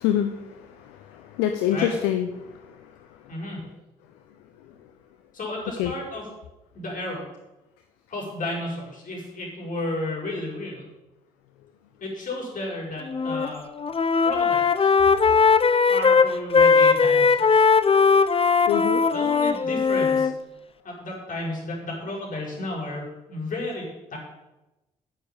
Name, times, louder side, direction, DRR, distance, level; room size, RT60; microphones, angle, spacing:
voice 1, 0.0-3.2 5.8-5.9 18.7-19.0, left 10 dB, 70° left, 7 dB, 0.9 m, -27 dB
voice 2, 3.3-3.6 5.3-6.2 6.7-7.2 8.1-10.9 12.0-13.6 14.2-14.9 15.9-17.7 19.1-20.3 20.8-23.9 24.1-24.2, left 2 dB, 50° left, -2 dB, 6.0 m, -33 dB
Wind instrument woodwind instrument, 13.1-13.5 13.8-20.3, left 5 dB, 30° left, 0.9 m, -19 dB
10.5 x 7.8 x 9.1 m, 1.0 s
figure-of-eight pair, 40°, 18 cm